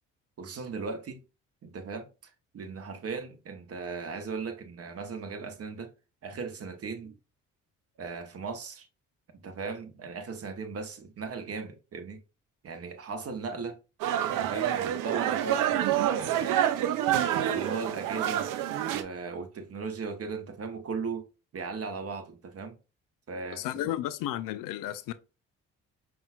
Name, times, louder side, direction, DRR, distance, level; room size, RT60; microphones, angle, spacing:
voice 1, 0.4-1.2 1.6-2.1 2.5-5.9 6.2-7.2 8.0-8.9 9.4-12.2 12.6-13.8 14.3-17.0 17.4-18.5 18.9-21.2 21.5-22.8 23.3-23.7, right 4 dB, 40° right, 0.9 m, -37 dB
sound 1, 14.0-19.0, right 11 dB, 60° right, 0.5 m, -27 dB
voice 2, 23.5-25.1, left 13 dB, 65° left, 0.5 m, -33 dB
5.4 x 2.3 x 2.3 m
hypercardioid pair, 50°, 36 cm